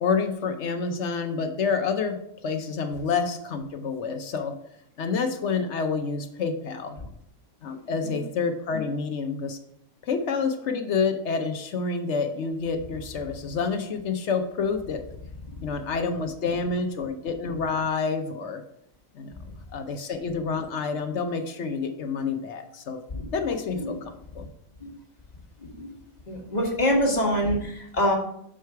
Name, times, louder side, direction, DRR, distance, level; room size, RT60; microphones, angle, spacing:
voice 1, 0.0-4.6 5.0-7.0 7.6-9.6 10.0-15.0 15.6-18.6 19.1-23.0 23.3-24.5, left 5 dB, 60° left, 7 dB, 0.9 m, -28 dB
voice 2, 26.3-28.2, equal, 30° left, -1 dB, 1.5 m, -25 dB
6.5 x 4.9 x 4.6 m, 0.72 s
omnidirectional pair, 1.4 m